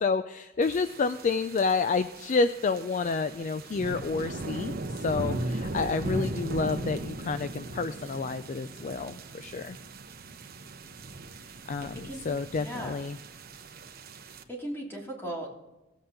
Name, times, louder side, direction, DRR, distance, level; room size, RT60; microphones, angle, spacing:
voice 1, 0.0-9.8 11.7-13.2, left 4 dB, 40° left, 11 dB, 0.3 m, -29 dB
sound 1, 0.6-14.4, right 2 dB, 50° right, 1.0 m, -38 dB
voice 2, 12.6-13.0 14.5-15.6, right 1 dB, 10° left, -3 dB, 2.8 m, -37 dB
18.0 x 7.9 x 3.8 m, 1.0 s
head